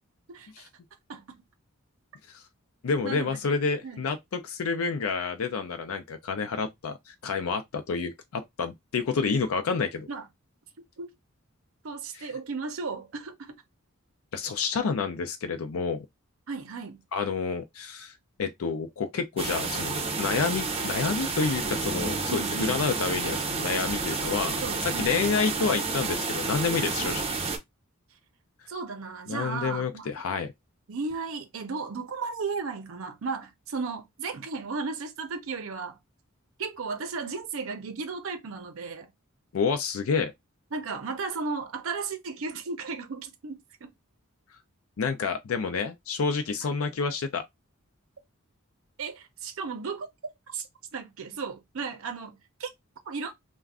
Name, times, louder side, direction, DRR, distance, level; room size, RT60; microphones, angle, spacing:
voice 1, 0.3-0.7 1.1-1.4 3.0-3.3 3.8-4.0 10.1-10.2 11.0-11.1 11.8-13.5 16.5-17.0 22.3-22.9 24.6-25.2 27.0-27.3 28.7-30.1 30.9-36.0 36.6-39.1 40.7-43.9 49.0-50.1 50.5-52.7 53.1-53.3, right 4 dB, 65° right, 0.6 m, -35 dB
voice 2, 2.8-10.1 12.1-12.3 14.3-16.1 17.1-18.1 18.4-27.2 29.3-30.5 39.5-40.3 45.0-47.4, left 5 dB, 75° left, 0.4 m, -29 dB
sound 1, 19.4-27.6, right 4 dB, 30° right, 0.7 m, -30 dB
2.4 x 2.1 x 3.5 m
head